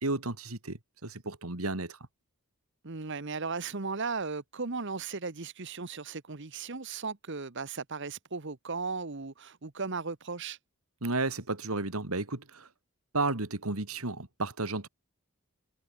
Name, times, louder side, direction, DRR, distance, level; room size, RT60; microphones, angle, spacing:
voice 1, 0.0-2.0 11.0-12.7 13.1-14.9, right 3 dB, 90° right, 2.7 m, -33 dB
voice 2, 2.8-10.6, right 4 dB, 55° right, 1.2 m, -36 dB
head